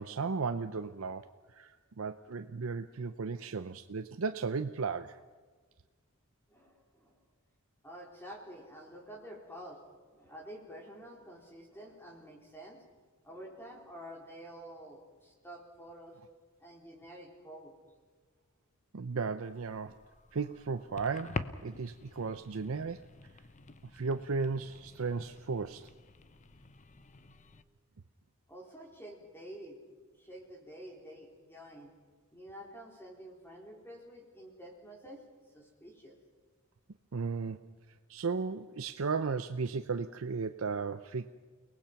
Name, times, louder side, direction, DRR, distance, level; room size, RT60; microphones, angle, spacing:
voice 1, 0.0-5.2 18.9-20.0 20.3-23.1 23.8-25.9 37.1-37.7 38.1-41.3, right 4 dB, 70° right, 10 dB, 0.6 m, -35 dB
voice 2, 6.5-7.2 7.8-9.8 10.1-12.8 13.2-16.2 16.6-17.7 28.5-29.8 30.2-31.9 32.3-35.2 35.5-36.2, equal, 10° left, -1 dB, 3.8 m, -49 dB
sound 1, 19.4-27.6, left 3 dB, 35° left, 0.9 m, -46 dB
30.0 x 19.0 x 5.9 m, 1.5 s
head